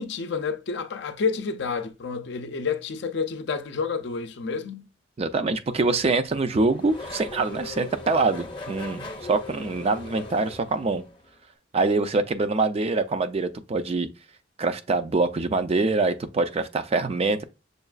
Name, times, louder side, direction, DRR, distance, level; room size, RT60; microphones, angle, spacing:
voice 1, 0.0-4.9, left 5 dB, 65° left, 0.5 m, -29 dB
voice 2, 5.2-11.0 11.7-14.1 14.6-17.4, right 3 dB, 35° right, 0.4 m, -24 dB
Race car auto racing / Accelerating revving vroom, 5.7-11.3, left 2 dB, 30° left, 0.7 m, -40 dB
6.4 x 2.4 x 2.3 m
head